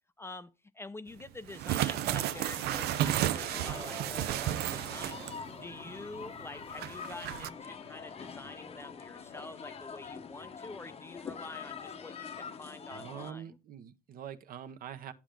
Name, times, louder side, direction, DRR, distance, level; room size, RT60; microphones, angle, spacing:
voice 1, 0.2-5.2 5.5-13.6, left 2 dB, 15° left, 0.4 m, -47 dB
sound 1, 1.5-5.5 5.8-5.9 6.7-7.5, right 14 dB, 75° right, 0.4 m, -32 dB
sound 2, 1.7-13.3, left 6 dB, 35° left, 0.8 m, -45 dB
sound 3, 2.2-10.9, right 5 dB, 35° right, 1.1 m, -51 dB
voice 2, 12.9-15.1, right 9 dB, 60° right, 0.8 m, -44 dB
8.9 x 7.2 x 3.5 m
cardioid pair, 110°, 17 cm